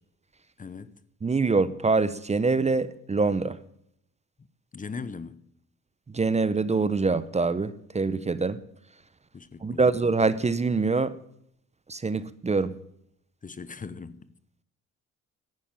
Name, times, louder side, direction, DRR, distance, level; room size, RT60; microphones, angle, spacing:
voice 1, 0.6-1.0 4.7-5.4 9.3-9.9 13.4-14.3, left 5 dB, 25° left, 0.8 m, -39 dB
voice 2, 1.2-3.6 6.1-8.6 9.6-11.2 11.9-12.7, right 4 dB, 20° right, 0.8 m, -25 dB
11.5 x 9.9 x 8.9 m
cardioid pair, 90°, 30 cm